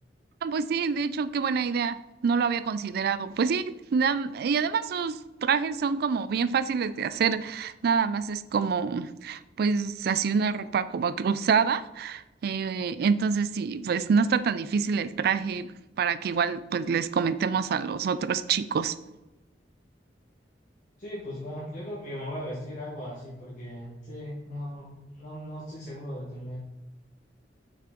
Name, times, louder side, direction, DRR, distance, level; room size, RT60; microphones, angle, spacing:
voice 1, 0.4-15.7 16.0-19.0, right 6 dB, 60° right, 14 dB, 0.3 m, -27 dB
voice 2, 21.0-26.6, equal, 45° left, -7 dB, 1.6 m, -38 dB
6.2 x 5.8 x 3.8 m, 1.0 s
head